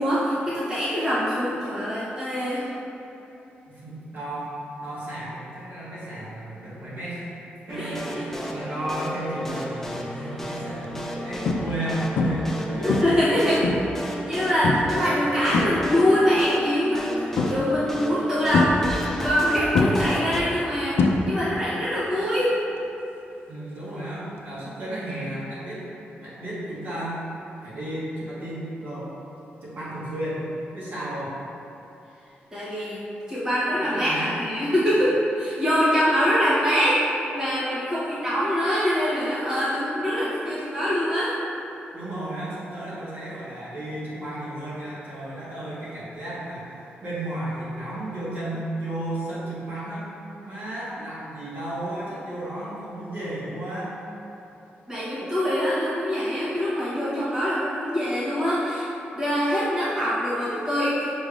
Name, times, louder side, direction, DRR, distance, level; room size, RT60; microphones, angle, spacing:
voice 1, 0.0-2.7 7.8-8.2 12.8-13.7 14.0-17.1 17.5-18.8 19.1-22.6 32.5-33.0 33.3-37.0 37.3-41.4 54.9-58.9 59.1-61.1, equal, 20° right, -11 dB, 1.0 m, -24 dB
voice 2, 3.7-7.3 7.7-13.4 23.5-25.9 26.2-27.2 27.6-29.1 29.6-30.4 30.7-31.4 33.7-34.4 41.9-50.1 50.4-53.9, right 1 dB, 60° right, -9 dB, 1.4 m, -33 dB
sound 1, 7.7-20.4, equal, 10° left, 0.4 m, -34 dB
sound 2, 10.1-10.2 10.7-10.9 11.4-11.9 12.2-12.6 12.9-14.0 14.6-15.0 15.3-16.2 17.4-17.9 18.5-19.4 19.7-21.6 21.9-22.3 24.4-24.5, left 3 dB, 75° left, 0.4 m, -24 dB
6.2 x 3.4 x 2.5 m, 3.0 s
wide cardioid pair, 150°, 4 cm